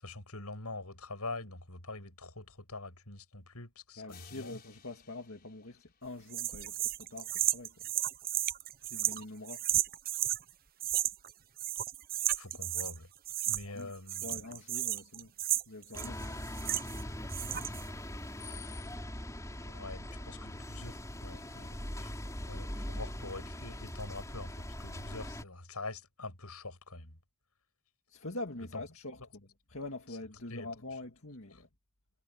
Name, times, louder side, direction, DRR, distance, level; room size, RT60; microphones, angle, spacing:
voice 1, 0.0-4.6 12.4-13.1 13.4-14.4 19.6-22.1 22.5-27.2 30.5-30.7, left 2 dB, 80° left, 7.7 m, -45 dB
voice 2, 4.0-7.9 8.8-9.6 13.6-15.3 15.7-16.4 28.1-31.7, left 2 dB, 60° left, 2.2 m, -45 dB
sound 1, 4.1-6.8, left 8 dB, 45° left, 5.4 m, -59 dB
sound 2, 6.3-10.4 10.8-11.3 11.6-13.0 13.3-13.8 14.1-17.0 17.3-17.9, right 12 dB, 40° right, 0.9 m, -33 dB
sound 3, 15.9-25.4, left 1 dB, 15° left, 4.9 m, -41 dB
head